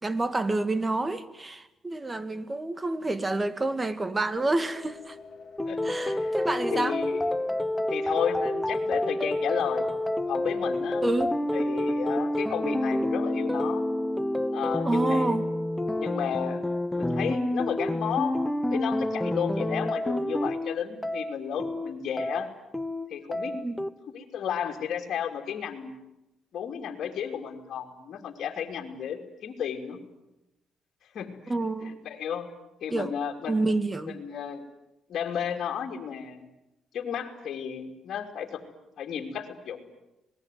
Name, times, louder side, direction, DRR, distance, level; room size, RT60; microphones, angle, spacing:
voice 1, 0.0-5.2 5.8-7.0 11.0-11.4 14.8-15.5 23.5-23.8 31.5-32.0 32.9-33.1 33.5-34.2, right 2 dB, 20° right, 1.8 m, -28 dB
sound 1, 4.3-10.9, left 4 dB, 40° left, 4.2 m, -47 dB
voice 2, 5.6-6.4 6.7-7.2 7.9-9.9 10.3-11.0 11.5-13.8 14.5-15.3 16.0-16.6 16.9-18.3 18.7-22.5 23.1-23.5 24.1-26.0 26.5-30.0 31.1-31.3 31.8-32.5 32.8-33.6 34.1-34.6 35.1-36.4 36.9-38.6 39.0-39.9, left 8 dB, 65° left, 3.0 m, -33 dB
sound 2, 5.6-23.9, left 1 dB, 5° left, 1.1 m, -29 dB
27.0 x 20.0 x 9.4 m
cardioid pair, 90°, 0 cm